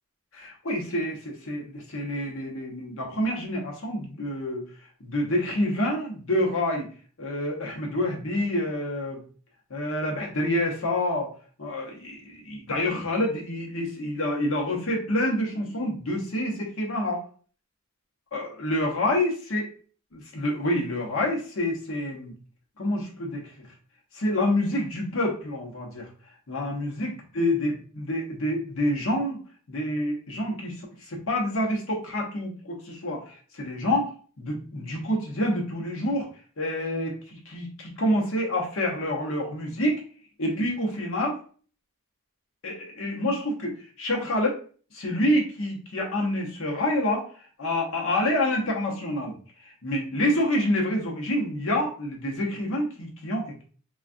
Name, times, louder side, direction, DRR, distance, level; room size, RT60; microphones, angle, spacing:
voice 1, 0.3-4.7 5.0-6.9 7.2-9.2 9.7-11.3 11.6-17.2 18.3-19.6 20.1-22.3 22.8-23.5 24.1-26.1 26.5-29.4 29.7-34.1 34.4-36.3 36.6-40.0 40.4-41.4 42.6-44.6 44.9-47.3 47.6-49.4 49.6-53.6, left 1 dB, 65° left, -1 dB, 0.8 m, -27 dB
3.3 x 2.4 x 2.5 m, 0.42 s
head